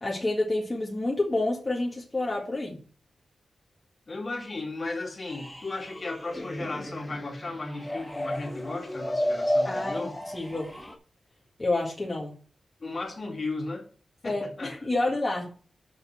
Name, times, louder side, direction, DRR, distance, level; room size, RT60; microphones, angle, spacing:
voice 1, 0.0-2.8 9.6-10.1 10.3-10.7 11.6-12.4 14.2-15.6, left 2 dB, 25° left, -3 dB, 1.9 m, -29 dB
voice 2, 4.1-10.1 12.8-13.9 14.2-14.7, left 3 dB, 45° left, 1 dB, 2.6 m, -35 dB
sound 1, 5.3-10.9, equal, 5° left, 1.5 m, -32 dB
6.9 x 5.4 x 7.0 m, 0.41 s
wide cardioid pair, 100°, 0 cm